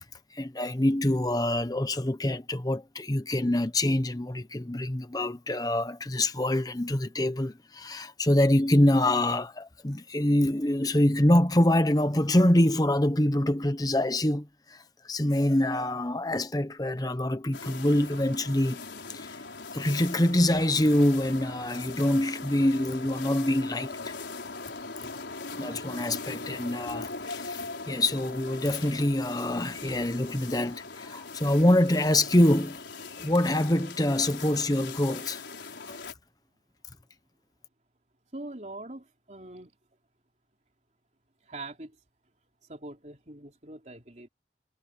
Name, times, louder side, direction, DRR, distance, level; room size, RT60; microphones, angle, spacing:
voice 1, 0.3-18.8 19.1-19.4 19.7-24.1 25.5-32.8 33.2-35.4 35.9-36.0, left 1 dB, 20° left, 1.0 m, -25 dB
sound 1, 17.5-36.1, left 4 dB, 85° left, 4.6 m, -40 dB
voice 2, 38.3-39.7 41.4-42.0 42.7-44.3, right 2 dB, 40° right, 3.9 m, -42 dB
head